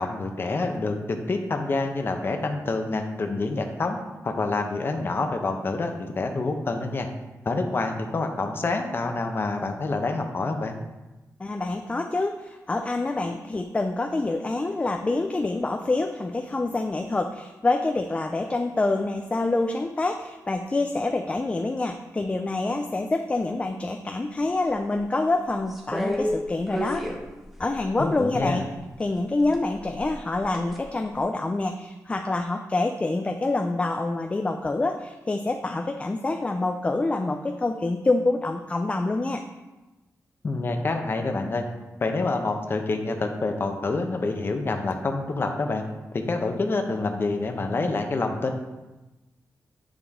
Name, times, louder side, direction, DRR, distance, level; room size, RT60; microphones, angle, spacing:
voice 1, 0.0-4.0 4.2-7.1 7.4-10.7 28.0-28.7 40.4-41.6 42.0-45.8 46.1-48.6, left 3 dB, 40° left, 4 dB, 0.8 m, -27 dB
voice 2, 11.4-27.0 27.6-28.6 29.0-39.4, left 2 dB, 20° left, 5 dB, 0.4 m, -26 dB
sound 1, 25.7-28.4 29.4-30.8 31.2-31.3, equal, 5° right, 0.9 m, -31 dB
9.4 x 5.0 x 3.6 m, 1.1 s
wide cardioid pair, 130°, 6 cm